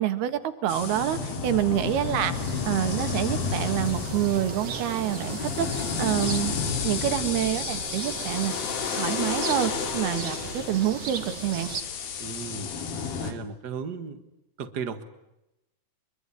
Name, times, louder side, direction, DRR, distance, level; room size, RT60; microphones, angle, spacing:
voice 1, 0.0-2.3 2.7-6.6 6.8-8.5 8.9-11.7, right 12 dB, 80° right, 10 dB, 3.6 m, -27 dB
sound 1, 0.7-13.3, left 6 dB, 70° left, 4.1 m, -31 dB
bird ambiance a little windier, 2.3-11.8, right 6 dB, 45° right, 2.8 m, -38 dB
voice 2, 12.2-12.7 13.2-14.2 14.6-15.0, right 5 dB, 65° right, 10 dB, 1.0 m, -35 dB
25.5 x 23.0 x 9.8 m, 0.90 s
omnidirectional pair, 4.5 m